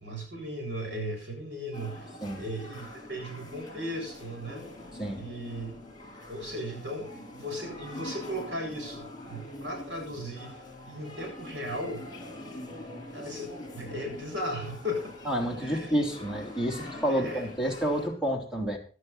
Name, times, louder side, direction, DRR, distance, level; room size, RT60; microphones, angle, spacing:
voice 1, 0.0-2.1 2.3-4.6 5.2-5.7 6.3-10.6 10.9-12.1 13.1-15.3 15.6-15.9 17.1-17.5, equal, 70° right, 2 dB, 7.7 m, -36 dB
sound 1, 1.7-18.1, left 1 dB, 20° left, 7.3 m, -44 dB
voice 2, 15.2-18.8, equal, 5° right, 2 dB, 3.1 m, -29 dB
17.5 x 11.5 x 4.2 m, 0.37 s
head